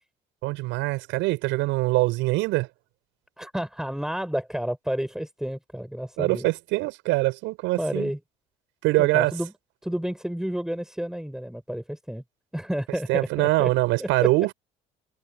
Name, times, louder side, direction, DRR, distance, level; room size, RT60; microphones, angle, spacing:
voice 1, 0.4-2.7 6.2-8.1 8.8-9.3 13.1-14.5, right 21 dB, 75° right, 7.9 m, -23 dB
voice 2, 3.4-6.5 7.8-8.2 9.0-9.5 9.8-12.2 12.5-13.7 14.0-14.3, equal, ahead, 5.4 m, -30 dB
supercardioid pair, 75°, 19 cm